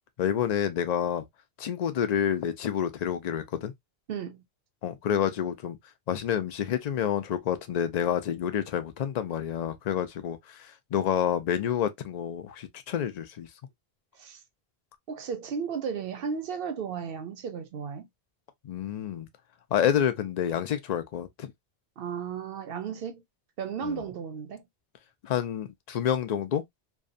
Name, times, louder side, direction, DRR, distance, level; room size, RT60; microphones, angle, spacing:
voice 1, 0.2-1.3 1.6-3.7 4.8-5.8 6.1-13.5 18.6-19.3 19.7-21.5 23.8-24.0 25.2-26.6, left 9 dB, 55° left, 0.5 m, -28 dB
voice 2, 4.1-4.4 14.2-14.4 15.1-18.1 22.0-23.2 23.6-24.7, right 6 dB, 65° right, 0.7 m, -34 dB
2.7 x 2.2 x 2.4 m
omnidirectional pair, 1.1 m